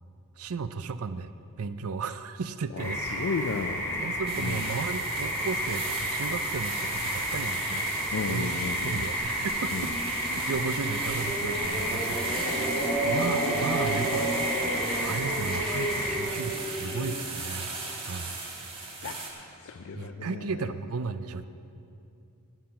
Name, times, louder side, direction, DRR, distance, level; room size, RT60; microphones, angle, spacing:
voice 1, 0.4-3.0 4.0-7.9 8.3-9.9 10.3-12.8 13.0-14.4 15.0-17.7 18.1-18.4 19.9-21.4, right 4 dB, 70° right, 11 dB, 0.5 m, -35 dB
voice 2, 2.7-4.1 4.4-4.7 8.1-9.0 9.7-9.9 19.0-19.3 19.6-20.6, left 4 dB, 65° left, 8 dB, 0.5 m, -34 dB
sound 1, 2.8-16.2, equal, 10° left, 2.9 m, -31 dB
sound 2, 4.3-19.3, right 3 dB, 25° right, 1.8 m, -38 dB
sound 3, 7.8-17.1, right 1 dB, 45° left, 3.2 m, -33 dB
12.5 x 9.4 x 5.8 m, 2.7 s
head